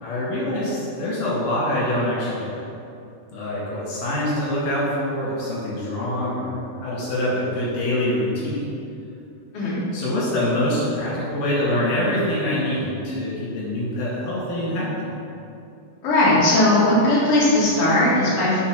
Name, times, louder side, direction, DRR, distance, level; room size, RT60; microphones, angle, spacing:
voice 1, 0.0-2.6 3.3-8.7 9.9-15.1, left 1 dB, 80° left, -8 dB, 3.4 m, -25 dB
voice 2, 16.0-18.6, left 1 dB, 45° left, -9 dB, 2.7 m, -18 dB
7.1 x 4.5 x 5.9 m, 2.7 s
omnidirectional pair, 3.6 m